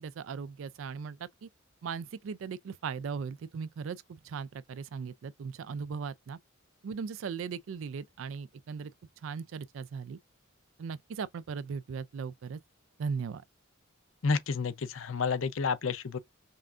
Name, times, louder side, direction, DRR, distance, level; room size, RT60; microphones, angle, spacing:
voice 1, 0.0-1.5 1.8-6.4 6.8-8.9 9.2-10.2 10.8-12.6 13.0-13.4, right 6 dB, 70° right, 0.4 m, -38 dB
voice 2, 14.2-16.2, left 5 dB, 75° left, 0.6 m, -30 dB
5.5 x 2.5 x 2.4 m
head